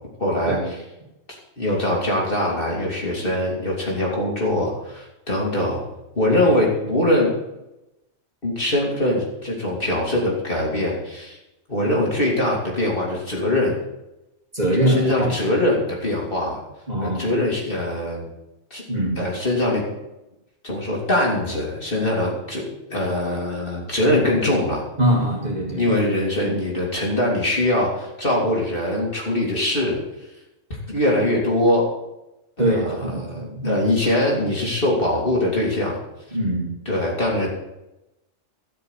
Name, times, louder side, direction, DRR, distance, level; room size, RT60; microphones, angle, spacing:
voice 1, 0.2-0.8 1.6-5.8 6.2-7.3 8.4-11.4 11.7-13.8 14.9-16.6 17.0-18.2 18.7-18.8 19.2-19.8 20.6-22.6 22.9-24.8 25.8-30.0 30.9-31.9 32.6-36.0 36.9-37.5, left 1 dB, 40° left, -3 dB, 3.7 m, -22 dB
voice 2, 14.5-15.4 16.9-17.3 18.9-19.2 25.0-25.9 26.4-26.6 32.6-33.9 36.3-36.7, right 1 dB, 30° right, -2 dB, 3.1 m, -23 dB
13.0 x 6.8 x 8.5 m, 0.92 s
omnidirectional pair, 1.4 m